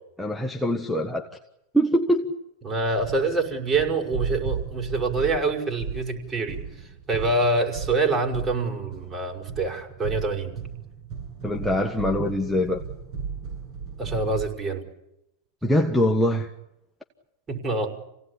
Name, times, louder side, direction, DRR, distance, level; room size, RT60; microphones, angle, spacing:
voice 1, 0.2-1.4 1.7-2.3 11.4-12.8 15.6-16.5, equal, 5° left, 1.6 m, -23 dB
voice 2, 2.6-6.6 7.1-10.5 14.0-14.8 17.5-17.9, right 3 dB, 25° right, 5.9 m, -25 dB
sound 1, 2.7-14.5, right 6 dB, 50° right, 7.8 m, -36 dB
27.5 x 17.5 x 10.0 m
hypercardioid pair, 115°, 0 cm